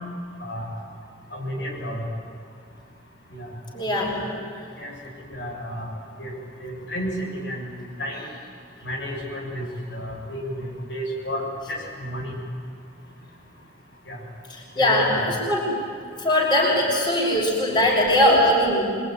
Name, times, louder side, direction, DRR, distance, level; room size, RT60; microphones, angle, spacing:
voice 1, 0.4-0.7 1.3-2.1 3.3-3.5 3.9-4.0 4.3-4.4 4.8-4.9 5.3-5.9 6.2-6.3 6.6-8.3 8.8-9.7 9.9-11.4 11.7-12.4 14.1-14.2 14.8-15.2, equal, 85° left, -2 dB, 7.5 m, -32 dB
voice 2, 3.7-4.2 14.5-15.8 16.2-18.8, left 1 dB, 25° left, -2 dB, 5.9 m, -21 dB
26.5 x 23.5 x 9.7 m, 2.2 s
head